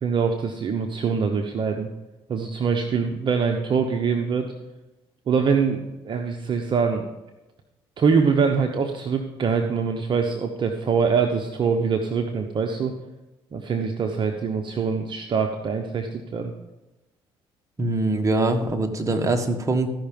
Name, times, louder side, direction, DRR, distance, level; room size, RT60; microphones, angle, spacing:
voice 1, 0.0-1.9 2.3-4.5 5.3-7.1 8.0-12.9 13.5-16.5, right 5 dB, 45° right, 4 dB, 1.0 m, -24 dB
voice 2, 17.8-19.9, right 2 dB, 30° right, 4 dB, 1.6 m, -23 dB
15.0 x 5.8 x 5.3 m, 1.0 s
supercardioid pair, 75°, 11 cm